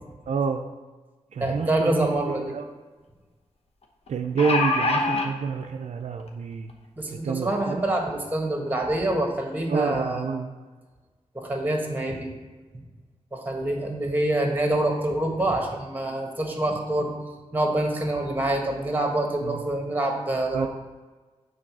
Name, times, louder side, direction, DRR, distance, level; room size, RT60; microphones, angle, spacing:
voice 1, 0.3-0.7 1.3-2.7 4.1-6.7 7.1-7.8 9.7-10.5 19.4-19.6 20.5-20.7, right 5 dB, 75° right, 5 dB, 0.4 m, -28 dB
voice 2, 1.4-2.5 7.0-10.3 11.3-12.3 13.3-17.1 17.5-20.7, right 1 dB, 15° right, 2 dB, 1.5 m, -26 dB
sound 1, 2.0-2.1 2.4-2.5 4.1-5.3 6.2-6.3 6.7-6.8, left 3 dB, 55° left, 1.0 m, -24 dB
7.6 x 4.0 x 6.1 m, 1.3 s
cardioid pair, 75°, 12 cm